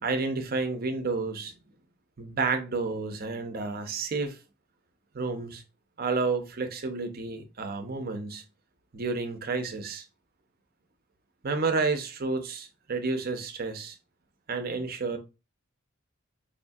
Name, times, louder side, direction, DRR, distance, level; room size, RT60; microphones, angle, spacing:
voice 1, 0.0-1.5 2.2-4.4 5.1-5.6 6.0-8.4 8.9-10.0 11.4-13.9 14.5-15.2, right 4 dB, 45° right, 0.6 m, -30 dB
4.8 x 2.3 x 2.5 m
head